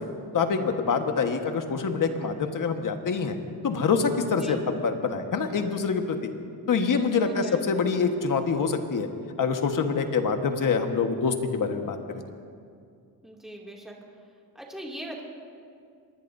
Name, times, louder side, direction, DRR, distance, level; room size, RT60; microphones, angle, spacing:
voice 1, 0.3-3.4 3.6-6.2 6.7-9.1 9.4-12.0, left 5 dB, 55° left, 5 dB, 1.6 m, -25 dB
voice 2, 7.2-7.6 13.2-14.0 14.5-15.2, right 1 dB, ahead, -2 dB, 2.7 m, -40 dB
26.0 x 20.0 x 2.8 m, 2.3 s
cardioid pair, 100°, 38 cm